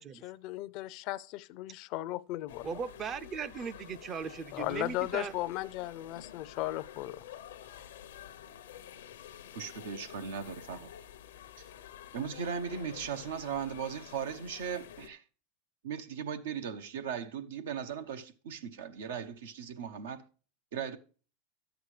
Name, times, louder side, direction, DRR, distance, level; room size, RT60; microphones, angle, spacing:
voice 1, 0.2-2.7 4.5-7.2, left 17 dB, 55° left, 0.5 m, -36 dB
sound 1, 2.5-15.1, left 10 dB, 85° left, 0.7 m, -50 dB
voice 2, 2.6-5.3, right 6 dB, 35° right, 0.5 m, -38 dB
voice 3, 9.5-10.9 11.6-11.7 12.1-15.2 15.8-20.2 20.7-21.0, right 7 dB, 80° right, 0.8 m, -38 dB
11.5 x 8.1 x 3.2 m
hypercardioid pair, 110°, 0 cm